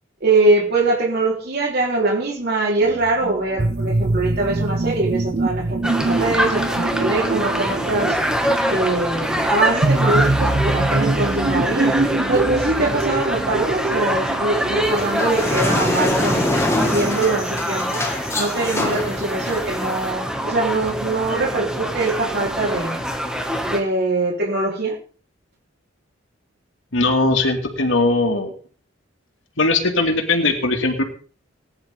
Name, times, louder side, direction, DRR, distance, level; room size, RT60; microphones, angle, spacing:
voice 1, 0.2-8.2 8.7-12.0 12.3-16.6 16.8-18.0 18.4-23.0 23.7-25.0, right 2 dB, 55° right, -2 dB, 4.3 m, -22 dB
sound 1, 2.8-14.9, right 2 dB, 40° right, 0.6 m, -24 dB
sound 2, 5.8-23.8, equal, 5° right, 2.1 m, -25 dB
sound 3, 14.8-20.1, left 1 dB, 15° left, 2.4 m, -24 dB
voice 2, 26.9-28.5 29.6-31.0, left 2 dB, 80° left, 4 dB, 2.5 m, -19 dB
20.0 x 10.5 x 3.8 m, 0.41 s
head